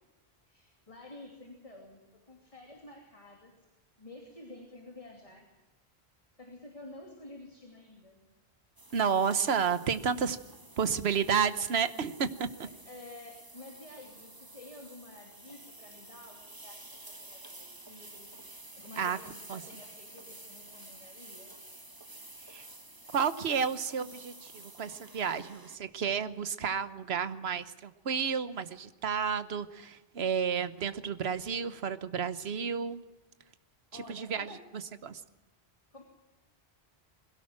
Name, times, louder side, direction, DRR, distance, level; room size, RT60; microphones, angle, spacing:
voice 1, 0.5-3.5 4.0-5.5 6.4-8.2 12.8-18.3 18.7-21.6 33.9-34.7 35.9-36.0, left 2 dB, 35° left, 1 dB, 3.0 m, -50 dB
sound 1, 8.8-25.8, right 2 dB, 20° right, 1.5 m, -51 dB
voice 2, 8.9-10.4 10.8-12.5 19.0-19.2 19.5-19.6 22.5-22.6 23.1-33.0 34.1-34.5 35.0-35.2, right 6 dB, 80° right, 13 dB, 1.3 m, -31 dB
21.5 x 17.0 x 7.4 m, 1.1 s
omnidirectional pair, 1.0 m